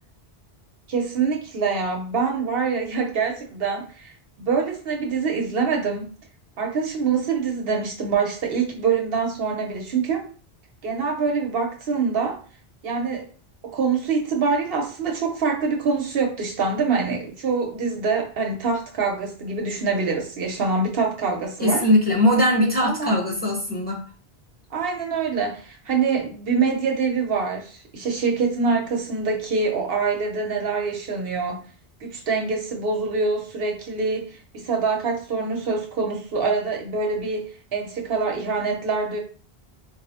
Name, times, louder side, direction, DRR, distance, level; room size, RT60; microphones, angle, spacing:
voice 1, 0.9-4.1 4.4-6.1 6.6-10.3 10.8-12.4 12.8-13.3 13.6-21.9 22.8-23.2 24.7-31.6 32.0-39.2, right 4 dB, 70° right, 0.9 m, -25 dB
voice 2, 21.6-24.0, left 1 dB, 10° left, 0.9 m, -20 dB
4.2 x 2.0 x 2.7 m
omnidirectional pair, 1.0 m